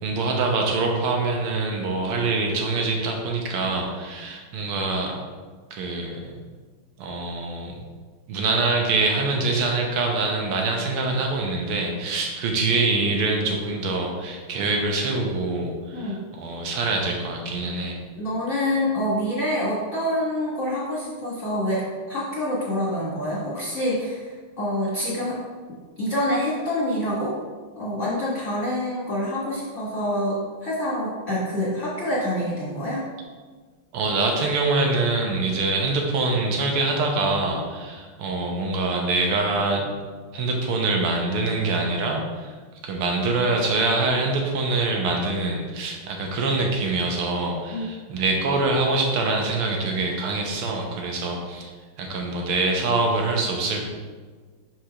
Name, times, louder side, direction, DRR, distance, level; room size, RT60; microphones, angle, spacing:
voice 1, 0.0-5.2 5.7-6.4 7.0-7.8 8.3-18.0 33.9-39.9 40.3-42.5 42.8-51.7 52.0-53.9, right 3 dB, 80° right, 1 dB, 1.9 m, -24 dB
voice 2, 18.2-25.4 26.0-27.3 27.8-33.0 47.7-47.8, left 1 dB, 40° left, -8 dB, 1.5 m, -26 dB
4.9 x 4.5 x 5.6 m, 1.5 s
omnidirectional pair, 2.4 m